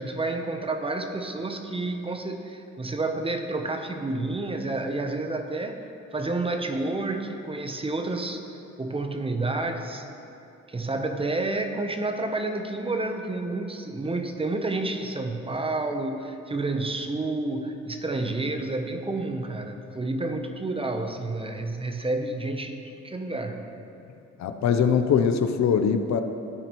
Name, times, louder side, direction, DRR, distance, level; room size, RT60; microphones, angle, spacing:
voice 1, 0.0-5.8 6.1-8.4 8.8-10.0 10.7-23.6, right 2 dB, 20° right, 5 dB, 0.7 m, -30 dB
voice 2, 24.4-26.2, left 7 dB, 65° left, 7 dB, 0.7 m, -22 dB
12.5 x 9.2 x 3.0 m, 2.7 s
cardioid pair, 90°, 30 cm